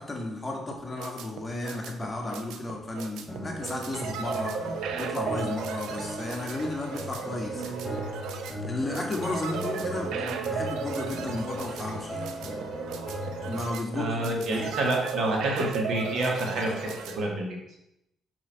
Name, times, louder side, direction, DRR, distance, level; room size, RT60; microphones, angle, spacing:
voice 1, 0.0-4.7 5.0-7.8 8.6-12.3 13.5-14.7, left 2 dB, 20° left, 0 dB, 1.7 m, -34 dB
sound 1, 0.7-17.2, right 6 dB, 85° right, 0.6 m, -35 dB
sound 2, 3.3-13.7, equal, ahead, 2.7 m, -38 dB
voice 2, 14.0-16.9 17.2-17.4, right 1 dB, 65° right, 0 dB, 1.8 m, -28 dB
6.1 x 5.6 x 4.1 m, 0.83 s
cardioid pair, 90°, 0 cm